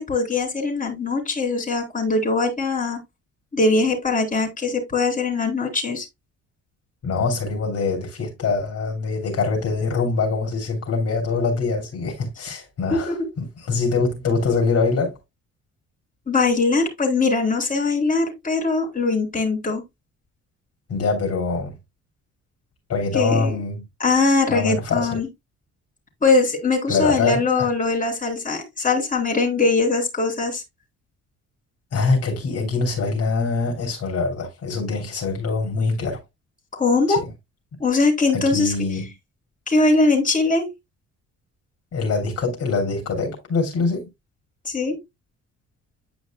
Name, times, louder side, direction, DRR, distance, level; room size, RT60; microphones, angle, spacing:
voice 1, 0.0-3.0 3.5-6.1 12.9-13.3 16.3-19.8 23.1-23.6 24.0-25.3 26.2-30.6 36.7-37.2 37.8-38.7 39.7-40.7 44.7-45.0, left 3 dB, 25° left, 3.7 m, -21 dB
voice 2, 7.0-15.2 20.9-21.7 22.9-23.8 24.5-25.1 26.9-27.4 31.9-36.2 37.1-37.2 38.3-39.1 41.9-44.1, left 4 dB, 55° left, 3.1 m, -24 dB
9.8 x 5.2 x 2.2 m
cardioid pair, 90°, 30 cm